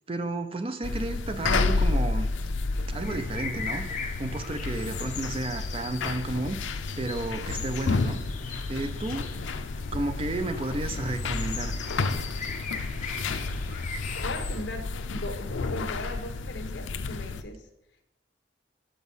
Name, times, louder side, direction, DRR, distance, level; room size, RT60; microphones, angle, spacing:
voice 1, 0.1-2.3 2.9-6.6 7.0-8.2 8.7-9.3 9.9-11.7, right 2 dB, 30° right, 9 dB, 0.4 m, -32 dB
sound 1, 0.8-17.4, left 3 dB, 85° left, 0.5 m, -31 dB
sound 2, 2.9-14.6, left 5 dB, 40° left, 0.9 m, -40 dB
voice 2, 13.2-17.6, left 1 dB, 65° left, 6 dB, 1.1 m, -39 dB
6.2 x 6.1 x 5.4 m, 0.87 s
head